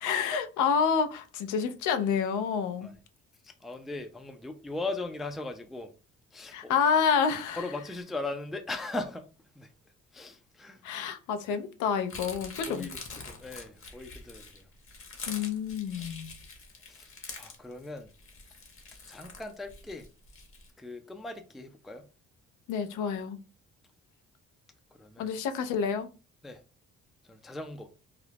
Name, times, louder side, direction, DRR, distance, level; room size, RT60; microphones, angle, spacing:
voice 1, 0.0-2.9 6.5-7.6 10.8-12.9 15.3-16.4 22.7-23.4 25.2-26.1, left 6 dB, 90° left, 0.5 m, -28 dB
voice 2, 3.4-5.9 6.3-6.7 7.6-9.3 9.6-9.7 10.1-11.1 12.7-14.7 15.9-16.2 16.9-18.1 19.1-20.1 20.8-22.0 25.0-25.3 26.4-26.6 27.3-27.9, left 2 dB, ahead, 0.3 m, -39 dB
sound 1, 12.1-20.7, left 4 dB, 45° left, 0.9 m, -45 dB
2.4 x 2.0 x 3.2 m
cardioid pair, 90°, 30 cm